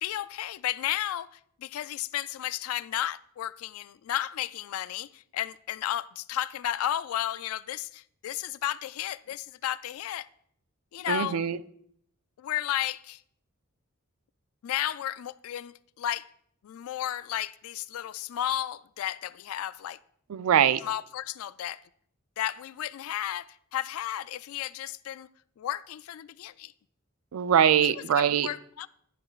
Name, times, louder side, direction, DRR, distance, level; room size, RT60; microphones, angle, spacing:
voice 1, 0.0-10.3 10.9-11.4 12.4-13.2 14.6-16.3 16.6-20.0 20.8-21.8 22.4-25.3 25.6-26.7 27.8-28.9, left 12 dB, 80° left, 0.3 m, -33 dB
voice 2, 11.1-11.6 20.3-20.8 27.3-28.5, right 9 dB, 85° right, 0.4 m, -22 dB
10.5 x 7.7 x 2.4 m
head